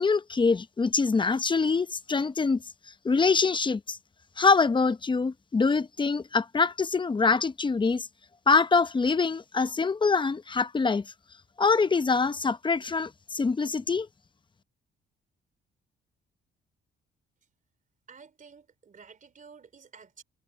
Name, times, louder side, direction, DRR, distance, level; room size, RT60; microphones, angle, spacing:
voice 1, 0.0-2.6 3.0-4.0 4.4-8.1 8.5-11.1 11.6-14.1, left 4 dB, 25° left, 0.8 m, -24 dB
voice 2, 18.1-20.2, right 5 dB, 40° right, 3.6 m, -51 dB
cardioid pair, 90°, 20 cm